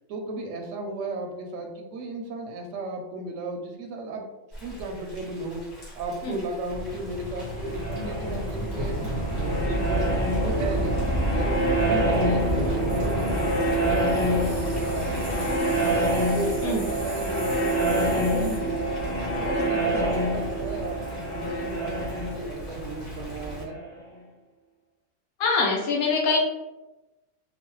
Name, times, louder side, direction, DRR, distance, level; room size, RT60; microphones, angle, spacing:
voice 1, 0.1-4.2 4.6-5.6 5.9-10.1 10.4-11.0 11.3-16.0 16.2-18.7 19.4-23.8, right 2 dB, 70° right, 2 dB, 0.8 m, -35 dB
Thunder / Rain, 4.5-23.6, equal, 35° left, 0.9 m, -36 dB
sound 1, 6.7-18.6, left 1 dB, 35° right, 0.5 m, -36 dB
sound 2, 7.3-24.0, right 1 dB, 20° left, 0.5 m, -27 dB
voice 2, 25.4-26.4, left 4 dB, 80° left, -2 dB, 1.1 m, -23 dB
3.0 x 2.0 x 3.0 m, 1.0 s
omnidirectional pair, 1.5 m